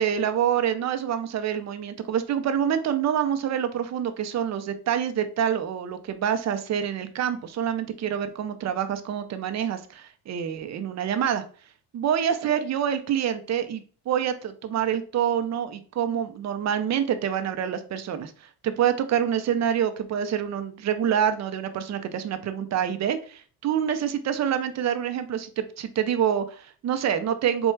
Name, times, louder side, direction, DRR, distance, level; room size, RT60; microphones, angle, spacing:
voice 1, 0.0-11.4 11.9-27.7, right 9 dB, 40° right, 9 dB, 0.6 m, -26 dB
4.4 x 2.3 x 4.5 m, 0.40 s
cardioid pair, 120°, 42 cm